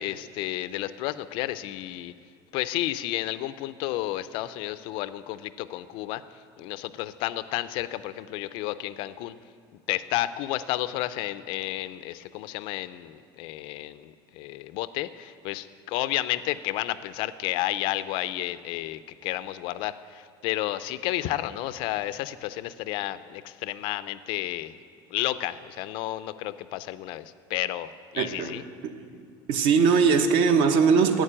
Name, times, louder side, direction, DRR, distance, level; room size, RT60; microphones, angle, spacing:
voice 1, 0.0-2.1 2.5-6.2 6.6-9.3 9.9-24.7 25.1-27.2 27.5-28.6, left 15 dB, 50° left, 14 dB, 0.4 m, -31 dB
voice 2, 28.2-28.6 29.5-31.2, right 5 dB, 55° right, 7 dB, 1.0 m, -20 dB
11.0 x 9.3 x 8.8 m, 2.2 s
cardioid pair, 175°, 11 cm